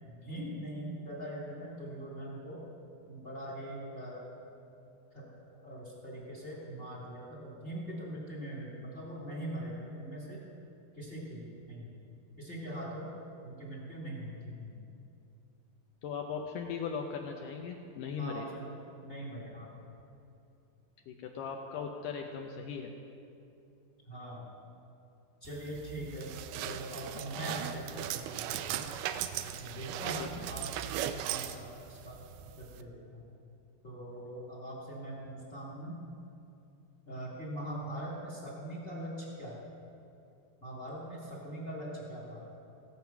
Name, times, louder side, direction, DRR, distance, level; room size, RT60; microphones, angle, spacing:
voice 1, 0.1-2.6 3.1-4.2 5.1-5.2 5.5-10.4 10.9-12.0 12.4-13.1 13.4-14.7 18.2-18.7 19.0-19.7 24.1-24.5 25.4-26.3 26.6-28.9 29.6-30.6 31.1-32.2 32.6-33.2 33.8-36.0 37.1-39.6 40.6-42.4, right 1 dB, 20° left, -5 dB, 1.6 m, -42 dB
voice 2, 16.0-18.5 21.1-22.9 30.2-30.5, left 6 dB, 75° left, 2 dB, 2.1 m, -38 dB
sound 1, 25.5-32.8, right 10 dB, 85° right, 2.4 m, -38 dB
17.5 x 7.7 x 5.8 m, 2.7 s
omnidirectional pair, 4.3 m